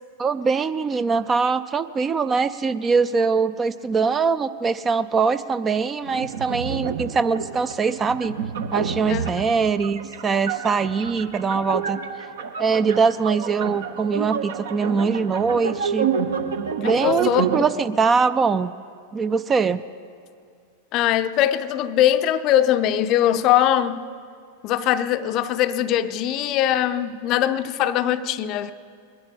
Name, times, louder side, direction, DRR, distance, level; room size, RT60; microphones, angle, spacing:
voice 1, 0.2-8.4 8.7-12.0 12.6-16.1 16.8-18.7 19.1-19.8, right 5 dB, 20° right, 0.4 m, -22 dB
sound 1, 6.0-17.6, right 6 dB, 60° right, 1.0 m, -29 dB
voice 2, 16.8-17.4 20.9-24.1 24.6-28.7, left 11 dB, 40° left, 0.5 m, -21 dB
21.5 x 11.0 x 5.3 m
figure-of-eight pair, 90°, 0 cm